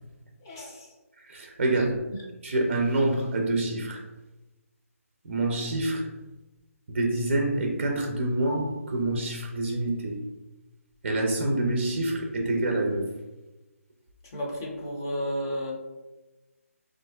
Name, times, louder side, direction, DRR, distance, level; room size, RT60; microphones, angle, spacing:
voice 1, 0.4-0.9 1.7-1.9 14.3-15.7, equal, 15° left, -2 dB, 0.3 m, -32 dB
voice 2, 1.3-2.0 2.4-4.0 5.2-6.1 6.9-10.2 11.0-13.0, right 2 dB, 45° right, 1 dB, 0.5 m, -26 dB
4.0 x 2.5 x 2.2 m, 1.1 s
hypercardioid pair, 170°, 8 cm